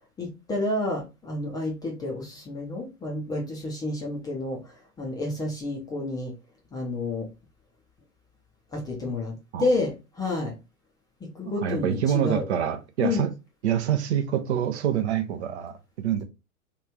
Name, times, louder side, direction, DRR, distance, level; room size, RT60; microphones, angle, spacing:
voice 1, 0.2-4.7 5.0-6.3 6.7-7.3 8.7-10.5 11.2-12.5 13.0-13.2, left 2 dB, 10° left, 0.5 m, -30 dB
voice 2, 11.4-13.3 13.6-16.2, right 9 dB, 50° right, 0.6 m, -26 dB
3.0 x 2.4 x 3.4 m
figure-of-eight pair, 100°, 43 cm